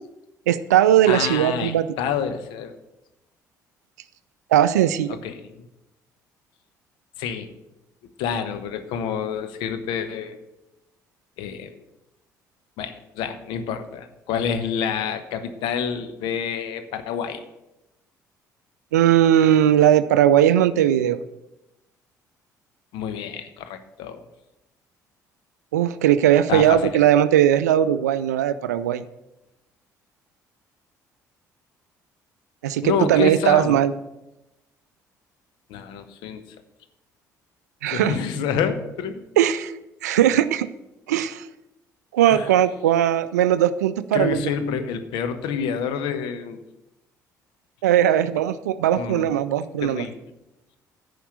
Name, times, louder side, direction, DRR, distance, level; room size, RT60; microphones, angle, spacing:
voice 1, 0.5-1.9 4.5-5.2 18.9-21.2 25.7-29.0 32.6-33.9 37.8-38.1 39.4-39.7 40.0-40.7 41.1-41.5 42.1-44.4 47.8-50.1, right 11 dB, 75° right, 14 dB, 0.4 m, -19 dB
voice 2, 1.1-2.8 5.1-5.7 7.2-7.5 8.2-10.4 11.4-11.7 12.8-17.4 22.9-24.2 26.5-26.9 32.8-33.7 35.7-36.4 37.9-39.2 42.3-42.5 44.1-46.6 48.9-49.3 49.8-50.2, left 7 dB, 60° left, 10 dB, 0.9 m, -28 dB
10.0 x 5.1 x 8.1 m, 0.92 s
figure-of-eight pair, 50°, 9 cm